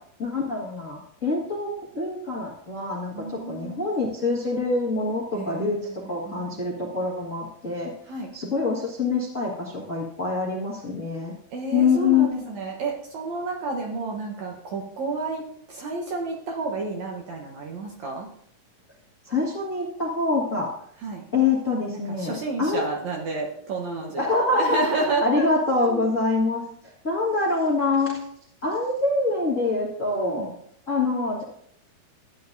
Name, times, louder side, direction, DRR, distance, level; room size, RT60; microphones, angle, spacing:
voice 1, 0.2-7.9 8.3-11.3 11.7-12.5 19.2-20.7 21.3-22.3 22.6-22.8 24.2-24.8 25.2-26.6 27.0-28.2 28.6-30.5 30.9-31.4, left 3 dB, 35° left, -4 dB, 1.2 m, -25 dB
voice 2, 3.1-3.9 5.3-5.7 6.3-6.5 8.1-8.3 11.5-18.3 21.0-21.2 22.1-24.3 24.5-25.5 25.9-26.1 30.1-30.5, right 3 dB, 65° right, 0 dB, 2.0 m, -30 dB
13.5 x 9.7 x 2.7 m, 0.68 s
omnidirectional pair, 4.3 m